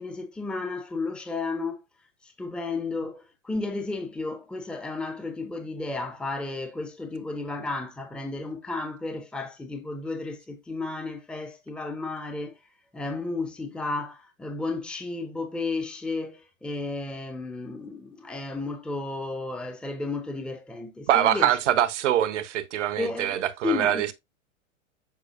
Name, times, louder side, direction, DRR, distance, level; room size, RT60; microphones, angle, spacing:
voice 1, 0.0-1.8 2.2-12.6 12.9-21.6 23.0-24.1, left 3 dB, ahead, 0.9 m, -33 dB
voice 2, 21.1-24.1, right 11 dB, 60° right, 1.1 m, -24 dB
7.6 x 5.9 x 2.6 m
figure-of-eight pair, 100°, 40 cm